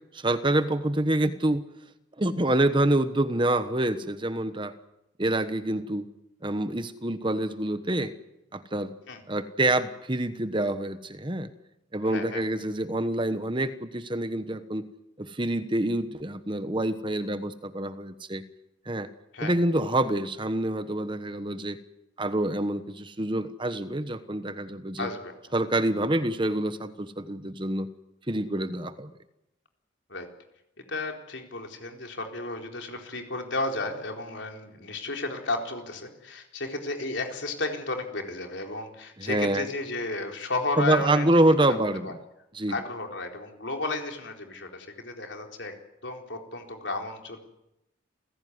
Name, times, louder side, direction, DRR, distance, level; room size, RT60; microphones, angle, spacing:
voice 1, 0.1-1.6 2.2-4.7 5.2-6.1 6.4-8.1 8.5-8.9 9.3-11.5 11.9-14.9 15.2-18.4 18.9-19.1 19.4-21.8 22.2-25.1 25.5-27.9 28.3-29.1 39.2-39.7 40.8-42.2 42.5-42.7, right 1 dB, 25° right, 11 dB, 1.2 m, -26 dB
voice 2, 12.1-12.4 19.3-19.5 25.0-25.3 30.1-30.3 30.9-41.2 41.7-42.1 42.7-45.7 46.0-47.4, left 2 dB, 65° left, 3 dB, 4.2 m, -33 dB
29.0 x 16.5 x 9.5 m, 0.88 s
head